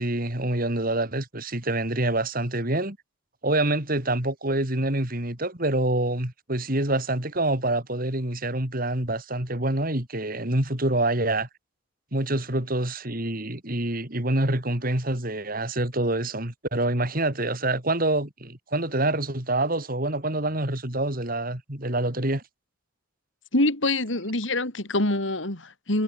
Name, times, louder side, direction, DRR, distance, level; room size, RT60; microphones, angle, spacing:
voice 1, 0.0-3.0 3.4-11.5 12.1-22.4, right 1 dB, 50° right, 4.2 m, -26 dB
voice 2, 23.5-26.0, left 2 dB, 80° left, 4.0 m, -25 dB
head